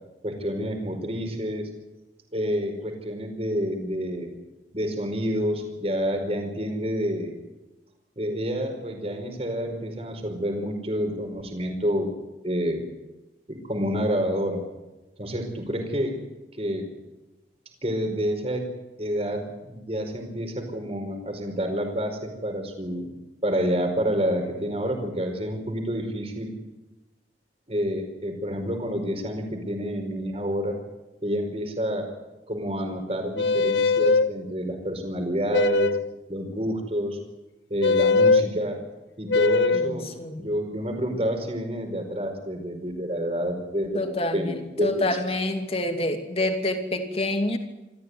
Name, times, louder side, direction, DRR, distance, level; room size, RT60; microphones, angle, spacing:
voice 1, 0.2-1.7 2.3-4.3 4.7-7.3 8.2-12.1 12.4-12.8 13.5-14.6 15.2-16.2 16.6-16.9 17.8-18.7 19.0-23.1 23.4-26.5 27.7-30.7 31.2-32.0 32.5-36.0 36.3-37.2 37.7-38.8 39.2-40.1 40.4-45.1, equal, 35° right, 5 dB, 4.9 m, -28 dB
sound 1, 33.4-34.3 35.5-36.1 37.8-38.5 39.3-39.9, left 4 dB, 85° left, 0.7 m, -20 dB
voice 2, 39.7-40.5 43.9-44.5 44.8-47.6, left 1 dB, 35° left, 6 dB, 2.7 m, -27 dB
26.5 x 15.0 x 9.8 m, 1.1 s
head